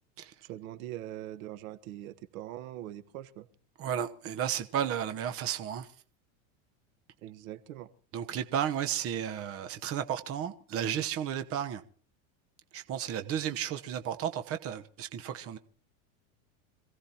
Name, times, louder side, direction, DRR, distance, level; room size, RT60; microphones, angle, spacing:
voice 1, 0.4-3.5 7.2-7.9, right 13 dB, 75° right, 1.3 m, -42 dB
voice 2, 3.8-5.9 8.1-11.8 12.7-15.6, right 9 dB, 35° right, 1.0 m, -33 dB
26.5 x 16.5 x 2.9 m
supercardioid pair, 130°, 42 cm